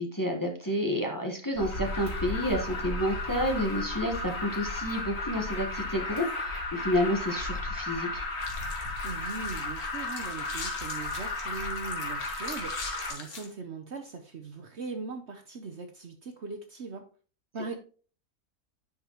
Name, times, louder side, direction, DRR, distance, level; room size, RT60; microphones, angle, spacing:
voice 1, 0.0-8.2, equal, 15° left, 1 dB, 1.2 m, -30 dB
Alarm, 1.6-13.1, left 2 dB, 45° left, 2.6 m, -34 dB
sound 1, 8.4-13.5, left 4 dB, 85° left, 2.1 m, -43 dB
voice 2, 9.0-17.0 17.5-17.7, right 4 dB, 55° right, 6 dB, 1.1 m, -40 dB
10.5 x 5.2 x 3.0 m, 0.39 s
omnidirectional pair, 1.6 m